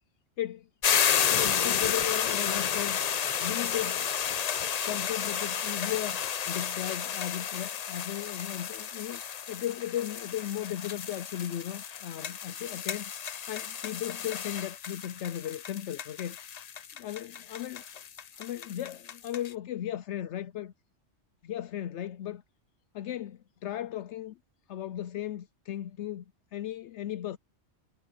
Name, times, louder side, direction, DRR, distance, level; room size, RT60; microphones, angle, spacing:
sound 1, 0.8-19.5, left 8 dB, 50° left, 0.5 m, -32 dB
voice 1, 1.3-3.0 3.3-4.1 4.8-6.2 6.5-9.2 9.5-13.1 13.5-16.5 17.0-17.9 18.3-20.7 21.4-22.4 22.9-24.4 24.7-26.2 26.5-27.4, left 11 dB, 75° left, 0.9 m, -36 dB
omnidirectional pair, 1.2 m